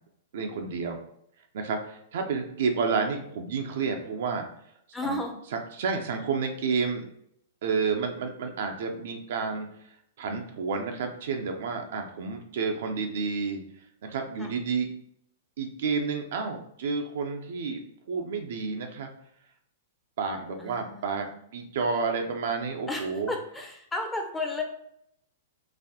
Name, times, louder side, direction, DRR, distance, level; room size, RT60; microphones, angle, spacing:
voice 1, 0.3-1.0 1.5-4.5 5.0-5.2 5.5-7.0 7.6-9.7 10.2-13.6 14.0-14.9 15.6-17.8 18.1-19.1 20.2-23.3, right 5 dB, 65° right, 4 dB, 0.6 m, -30 dB
voice 2, 4.9-5.4 14.4-14.5 20.6-21.3 22.9-24.6, left 2 dB, 10° left, 2 dB, 0.7 m, -33 dB
4.0 x 2.6 x 2.8 m, 0.72 s
hypercardioid pair, 125°, 0 cm